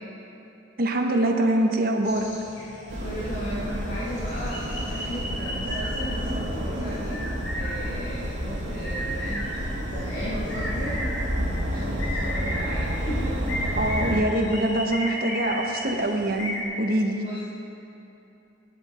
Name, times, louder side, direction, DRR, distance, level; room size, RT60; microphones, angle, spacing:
voice 1, 0.8-2.3 13.8-17.2, right 1 dB, 50° right, 3 dB, 1.1 m, -24 dB
sound 1, 2.0-16.6, equal, 85° left, 2.4 m, -36 dB
sound 2, 2.9-14.2, equal, 75° right, 2.1 m, -30 dB
voice 2, 3.0-7.2 7.6-9.6 9.9-10.9 11.7-13.4 17.1-17.5, equal, 45° left, -7 dB, 1.9 m, -35 dB
16.5 x 9.9 x 4.3 m, 2.9 s
head